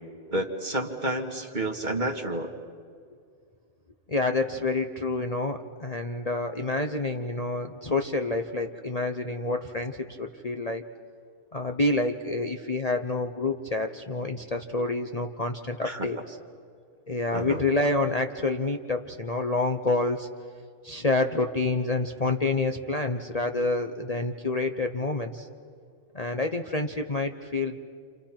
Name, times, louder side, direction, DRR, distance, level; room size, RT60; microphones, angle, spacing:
voice 1, 0.3-2.5 15.8-16.1 17.3-17.6, right 1 dB, 35° right, 3 dB, 2.0 m, -30 dB
voice 2, 4.1-10.8 11.5-16.2 17.1-20.3 20.8-25.5 26.1-27.8, left 2 dB, 30° left, 4 dB, 1.0 m, -28 dB
30.0 x 28.0 x 5.9 m, 2.2 s
omnidirectional pair, 1.4 m